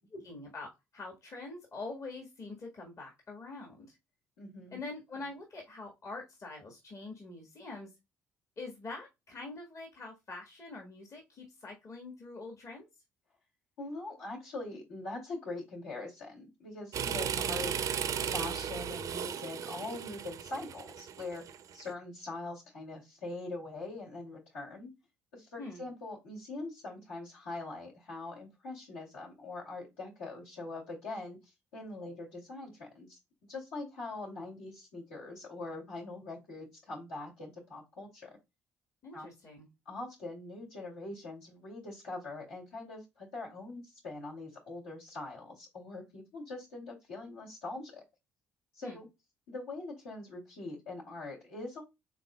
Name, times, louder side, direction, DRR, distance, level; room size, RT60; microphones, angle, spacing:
voice 1, 0.1-3.9 4.7-7.9 8.6-12.9 25.6-25.8 39.0-39.7 48.8-49.0, left 3 dB, 45° left, 1 dB, 1.5 m, -44 dB
voice 2, 4.4-4.8 13.8-17.8 18.3-24.9 25.3-31.4 31.7-33.2 33.5-38.4 39.1-39.3 39.9-48.0 48.8-49.1 49.5-51.9, left 2 dB, 80° left, -4 dB, 2.3 m, -42 dB
sound 1, 16.9-21.8, right 8 dB, 55° right, 0.5 m, -35 dB
5.2 x 3.7 x 2.2 m, 0.22 s
hypercardioid pair, 50°, 7 cm